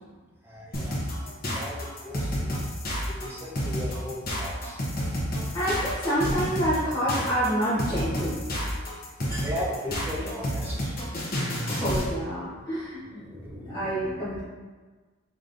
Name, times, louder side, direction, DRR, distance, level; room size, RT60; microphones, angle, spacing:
voice 1, 0.4-2.5 3.1-4.8 9.4-11.6 13.0-14.4, equal, 10° right, -5 dB, 0.7 m, -38 dB
sound 1, 0.7-12.1, equal, 45° left, 0.9 m, -30 dB
voice 2, 5.5-8.3 9.3-9.4 11.6-13.3 13.7-14.4, equal, 15° left, -12 dB, 0.9 m, -28 dB
5.0 x 3.0 x 2.6 m, 1.4 s
head